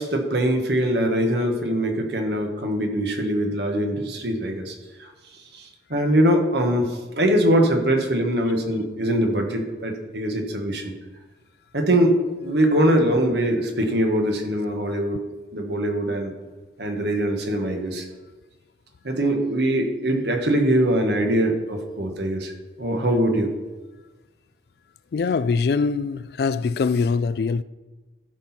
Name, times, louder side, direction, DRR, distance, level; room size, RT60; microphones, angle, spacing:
voice 1, 0.0-5.1 5.5-10.9 11.7-15.2 15.5-16.3 16.8-18.0 19.0-22.5 22.8-23.5, right 1 dB, 65° right, 1.5 m, -22 dB
voice 2, 25.1-27.6, left 4 dB, 60° left, 0.3 m, -23 dB
14.0 x 6.0 x 4.3 m
head